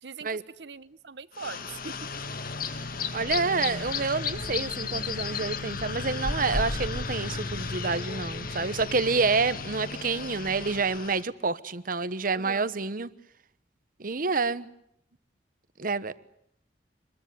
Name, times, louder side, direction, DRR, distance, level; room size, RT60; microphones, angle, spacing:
voice 1, 0.0-1.9 12.3-12.7, right 4 dB, 70° right, 17 dB, 1.0 m, -42 dB
sound 1, 1.3-11.2, left 5 dB, 55° left, 1.8 m, -34 dB
sound 2, 1.7-2.0 2.4-2.5 2.7-2.8 3.1-3.5 4.0-4.1 4.5-5.3 5.6-7.8, equal, 10° left, 3.3 m, -35 dB
voice 2, 3.1-13.1 14.0-14.7 15.8-16.1, right 4 dB, 50° right, 15 dB, 1.1 m, -28 dB
25.5 x 21.5 x 9.5 m, 0.74 s
head